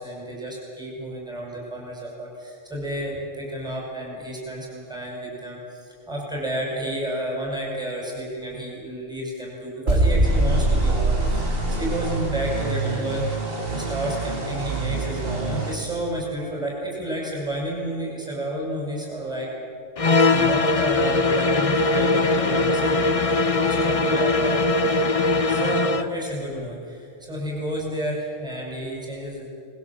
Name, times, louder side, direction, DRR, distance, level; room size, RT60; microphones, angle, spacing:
voice 1, 0.0-11.4 11.7-13.3 13.7-19.5 20.3-24.6 25.4-29.4, right 1 dB, 5° right, -3 dB, 5.8 m, -31 dB
sound 1, 9.9-12.6, right 1 dB, 80° right, 3.5 m, -22 dB
sound 2, 10.2-15.8, right 5 dB, 50° right, 2.8 m, -29 dB
sound 3, 20.0-26.1, left 3 dB, 30° left, 0.8 m, -21 dB
25.5 x 20.5 x 7.3 m, 2.4 s
omnidirectional pair, 1.3 m